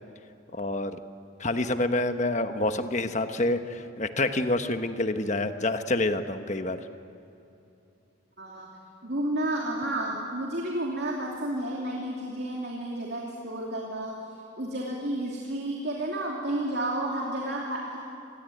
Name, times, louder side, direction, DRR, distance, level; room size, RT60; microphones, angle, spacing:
voice 1, 0.5-0.9 1.4-6.8, left 2 dB, 35° left, 8 dB, 1.2 m, -27 dB
voice 2, 8.4-8.7 9.0-14.2 14.6-18.0, right 1 dB, 55° right, -2 dB, 2.9 m, -31 dB
27.0 x 20.5 x 9.4 m, 2.8 s
head